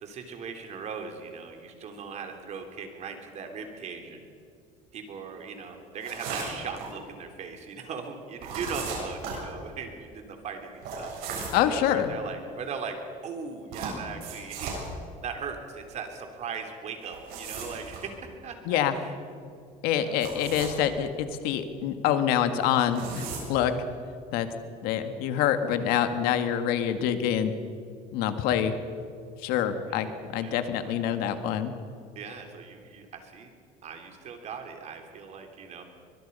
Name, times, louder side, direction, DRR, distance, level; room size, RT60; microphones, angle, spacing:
voice 1, 0.0-4.3 4.9-11.4 11.7-13.0 13.2-14.7 15.2-19.2 19.9-20.3 29.9-30.1 30.4-31.0 32.2-33.5 33.8-35.8, right 5 dB, 45° right, 4 dB, 3.4 m, -39 dB
sound 1, 6.0-6.9 8.4-9.4 10.8-11.7 13.7-14.9 17.0-18.0 20.1-20.8 22.6-23.4, right 5 dB, 75° right, 7.8 m, -36 dB
voice 2, 11.5-12.2 18.7-18.9 19.8-23.2 23.5-23.7 24.3-24.5 24.8-27.5 28.1-28.7 29.4-31.7, left 9 dB, 80° left, 8 dB, 1.8 m, -26 dB
23.5 x 22.0 x 5.5 m, 2.3 s
cardioid pair, 130°, 16 cm